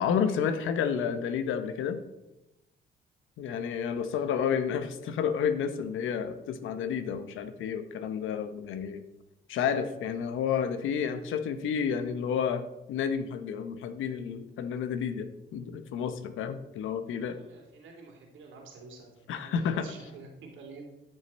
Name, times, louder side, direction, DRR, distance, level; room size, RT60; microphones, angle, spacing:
voice 1, 0.0-2.0 3.4-9.0 9.5-12.6 12.9-17.4 19.3-19.9, left 7 dB, 80° left, 10 dB, 1.0 m, -30 dB
voice 2, 3.9-4.5 17.2-20.9, right 3 dB, 75° right, 1 dB, 2.7 m, -50 dB
12.0 x 6.4 x 4.2 m, 0.95 s
cardioid pair, 90°, 20 cm